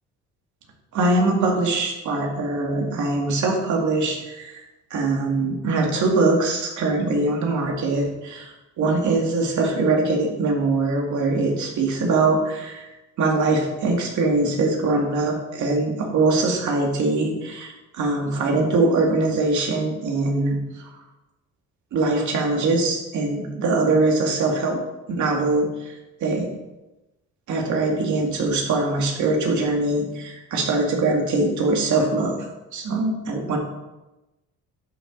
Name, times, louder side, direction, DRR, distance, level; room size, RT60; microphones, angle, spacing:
voice 1, 0.9-4.6 4.9-12.9 13.2-20.9 21.9-24.8 25.1-25.9 26.2-26.5 27.5-32.4 32.7-33.6, right 3 dB, 75° right, 0 dB, 2.3 m, -22 dB
11.5 x 5.8 x 4.0 m, 1.0 s
cardioid pair, 90°, 30 cm